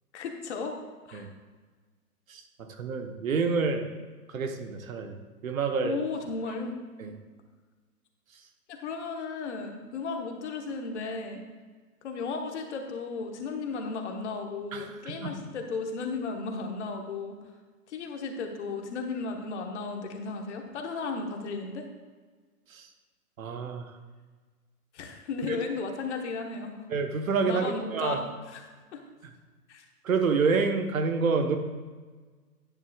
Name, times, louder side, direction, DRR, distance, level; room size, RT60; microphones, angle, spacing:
voice 1, 0.1-0.8 1.1-1.3 5.8-6.8 8.7-11.4 12.0-17.3 17.9-21.9 24.9-26.8 27.5-28.6 28.9-29.0 29.7-29.8, left 4 dB, 50° left, 3 dB, 1.3 m, -35 dB
voice 2, 2.3-3.9 4.3-5.9 7.0-7.1 14.7-15.4 22.7-22.9 23.4-24.0 25.5-25.6 26.9-28.2 30.0-31.6, right 4 dB, 60° right, 5 dB, 1.1 m, -28 dB
10.5 x 9.2 x 2.4 m, 1.4 s
figure-of-eight pair, 125°, 45 cm